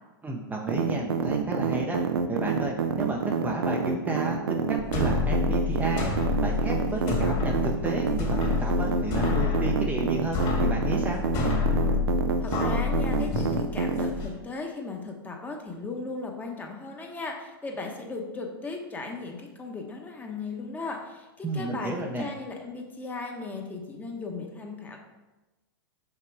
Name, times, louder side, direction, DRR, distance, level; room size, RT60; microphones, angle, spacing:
voice 1, 0.2-2.0 2.3-6.1 6.4-11.2 21.4-22.3, right 2 dB, 15° right, -1 dB, 0.7 m, -32 dB
sound 1, 0.7-14.1, right 6 dB, 85° right, 0.7 m, -27 dB
bajando una escalera de metal, 4.8-14.3, left 5 dB, 40° left, 2.2 m, -28 dB
voice 2, 12.4-25.0, left 3 dB, 15° left, 1 dB, 1.1 m, -37 dB
5.9 x 5.8 x 4.6 m, 1.1 s
hypercardioid pair, 120°, 13 cm